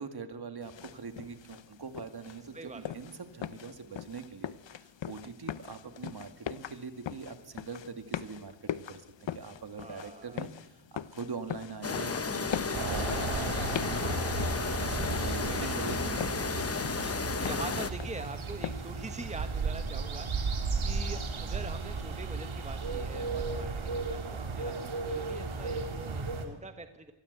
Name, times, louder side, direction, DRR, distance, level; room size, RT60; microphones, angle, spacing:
voice 1, 0.0-16.5 17.5-17.8, right 5 dB, 50° right, 8 dB, 2.2 m, -43 dB
sound 1, 0.6-19.0, left 9 dB, 70° left, 0.9 m, -42 dB
voice 2, 2.5-2.9 9.7-10.4 15.5-15.8 17.3-27.1, right 3 dB, 15° right, 8 dB, 1.2 m, -44 dB
sound 2, 11.8-17.9, left 5 dB, 30° left, 0.9 m, -33 dB
sound 3, 12.7-26.5, right 4 dB, 80° right, 3.0 m, -34 dB
26.5 x 20.0 x 8.1 m, 1.0 s
wide cardioid pair, 150°, 47 cm